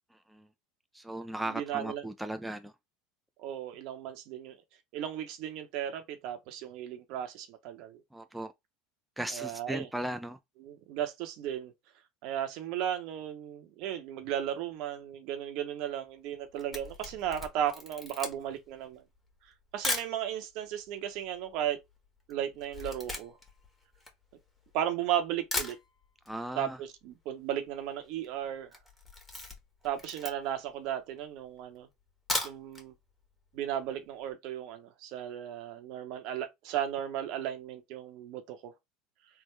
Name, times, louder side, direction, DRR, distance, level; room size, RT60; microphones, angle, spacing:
voice 1, 0.1-0.5 0.9-2.7 8.1-8.5 9.2-10.4 26.3-26.8, right 1 dB, 5° right, 0.4 m, -37 dB
voice 2, 1.5-2.0 3.4-4.6 4.9-8.0 9.3-9.9 10.6-11.7 12.2-19.0 19.7-21.8 22.3-23.4 24.7-25.8 26.6-28.7 29.8-31.9 32.4-32.9 33.5-38.7, right 10 dB, 65° right, 0.9 m, -35 dB
Camera, 16.3-20.2 20.9-21.0 21.1-24.8 25.2-25.3 25.5-26.4 26.6-26.7 27.0-27.1 27.3-27.7 28.1-28.3 28.7-30.7 31.2-31.3 32.1-32.9 33.2-33.3 33.7-33.8, left 2 dB, 10° left, 1.3 m, -37 dB
3.5 x 2.1 x 3.2 m
supercardioid pair, 100°, 0 cm